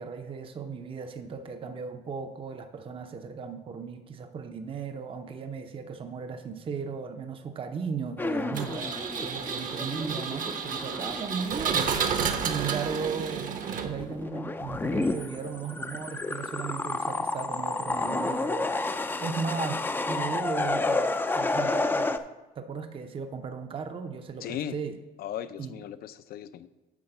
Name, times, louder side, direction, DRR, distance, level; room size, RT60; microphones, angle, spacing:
voice 1, 0.0-8.9 9.2-11.9 12.4-22.2 22.6-25.0 25.6-25.7, right 5 dB, 30° right, 7 dB, 0.6 m, -36 dB
sound 1, 8.2-12.3 12.6-13.2 13.6-22.2, left 3 dB, 10° left, 0.4 m, -30 dB
Engine, 8.5-14.2, right 6 dB, 55° right, 0.9 m, -31 dB
voice 2, 24.4-24.7 25.2-26.7, left 10 dB, 65° left, 12 dB, 0.6 m, -37 dB
9.7 x 4.0 x 6.7 m, 1.1 s
cardioid pair, 110°, 17 cm